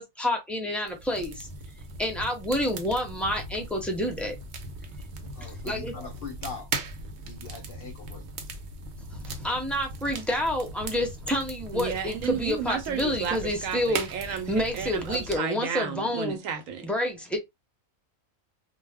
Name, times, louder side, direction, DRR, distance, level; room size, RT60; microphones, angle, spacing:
voice 1, 0.0-1.5 2.0-4.4 5.4-6.1 9.1-16.4 16.8-17.4, left 1 dB, ahead, 0.4 m, -29 dB
sound 1, 0.8-15.4, right 3 dB, 65° right, 0.8 m, -39 dB
voice 2, 5.3-6.7 7.2-8.2, left 4 dB, 55° left, 0.7 m, -41 dB
voice 3, 11.7-16.9, right 7 dB, 85° right, 1.0 m, -32 dB
2.3 x 2.1 x 3.4 m
omnidirectional pair, 1.4 m